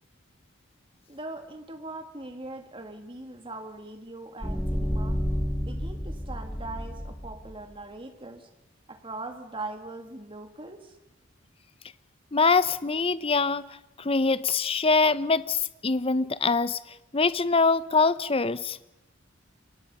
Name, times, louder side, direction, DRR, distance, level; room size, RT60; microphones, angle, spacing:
voice 1, 1.1-5.2 5.6-8.5 8.9-11.0, right 2 dB, 25° right, 6 dB, 2.1 m, -41 dB
sound 1, 4.4-7.5, equal, 15° left, 3.1 m, -30 dB
voice 2, 12.3-13.6 14.0-16.8 17.1-18.8, left 4 dB, 30° left, 15 dB, 0.7 m, -24 dB
29.0 x 23.0 x 5.5 m, 0.93 s
head